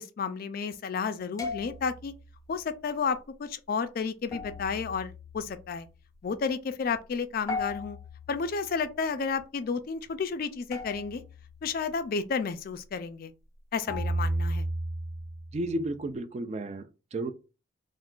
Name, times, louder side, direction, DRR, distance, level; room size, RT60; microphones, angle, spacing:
voice 1, 0.0-2.1 2.5-5.9 6.2-8.0 8.3-11.2 11.6-13.3 13.7-14.7, left 5 dB, 45° left, 0.3 m, -32 dB
sound 1, 1.4-2.3 4.3-5.9 7.5-8.8 10.7-11.8 13.9-15.9, equal, 15° left, 0.7 m, -35 dB
voice 2, 15.5-17.3, right 1 dB, 35° right, 0.3 m, -33 dB
2.5 x 2.3 x 3.6 m
head